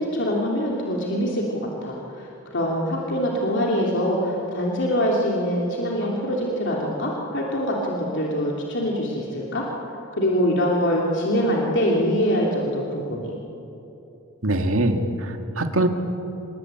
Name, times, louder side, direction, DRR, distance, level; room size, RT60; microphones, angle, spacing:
voice 1, 0.0-9.6 10.1-13.4, equal, 60° left, -2 dB, 3.3 m, -24 dB
voice 2, 14.4-15.9, right 1 dB, 80° right, 5 dB, 2.0 m, -23 dB
27.5 x 20.0 x 9.0 m, 3.0 s
head